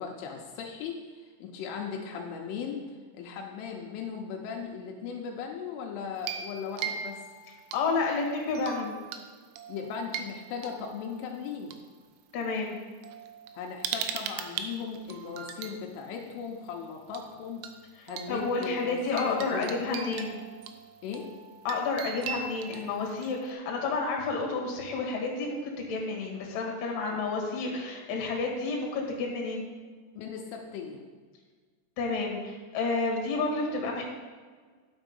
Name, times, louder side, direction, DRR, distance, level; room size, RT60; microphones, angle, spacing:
voice 1, 0.0-2.9 3.1-7.2 9.7-11.7 13.5-17.7 18.1-20.2 21.0-21.3 27.1-27.2 30.2-31.0, left 6 dB, 80° left, 1 dB, 3.4 m, -38 dB
sound 1, 6.2-8.1 8.6-9.2 9.6-11.8 12.6-12.7 13.0-15.8 17.2-17.3 17.6-17.7 18.1-23.5, right 8 dB, 80° right, 2.8 m, -39 dB
voice 2, 7.7-8.9 12.3-12.8 18.0-20.4 21.6-29.6 32.0-34.0, left 3 dB, 55° left, -1 dB, 3.0 m, -30 dB
9.8 x 6.8 x 5.3 m, 1.5 s
omnidirectional pair, 5.7 m